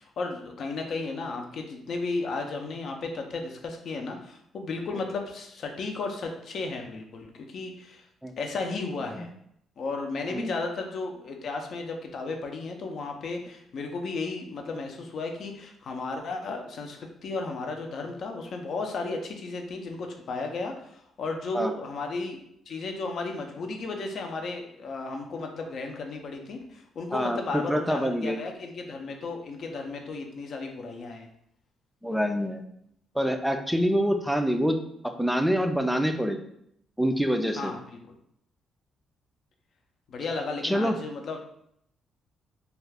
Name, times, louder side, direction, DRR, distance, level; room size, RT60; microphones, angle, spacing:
voice 1, 0.0-8.1 8.4-9.3 9.8-22.4 22.7-31.3 37.5-38.1 40.1-41.4, left 3 dB, 60° left, 3 dB, 0.5 m, -34 dB
voice 2, 27.1-28.4 32.0-32.6 33.2-34.8 35.0-36.4 37.0-37.7 40.6-41.0, equal, ahead, 5 dB, 0.3 m, -26 dB
2.4 x 2.3 x 3.3 m, 0.73 s
cardioid pair, 90°, 0 cm